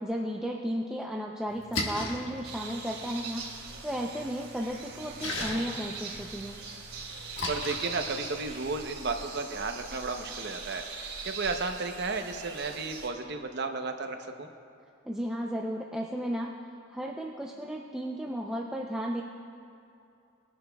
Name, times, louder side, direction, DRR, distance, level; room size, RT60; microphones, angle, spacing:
voice 1, 0.0-3.5 3.8-6.6 15.0-16.6 16.9-19.2, equal, 5° right, -2 dB, 0.5 m, -34 dB
Splash splatter, 1.5-8.9, left 2 dB, 60° left, 1.4 m, -39 dB
sound 1, 2.4-13.1, right 4 dB, 85° right, 2.5 m, -42 dB
voice 2, 7.5-14.5, right 3 dB, 50° right, 5 dB, 0.8 m, -33 dB
20.5 x 10.5 x 2.3 m, 2.6 s
head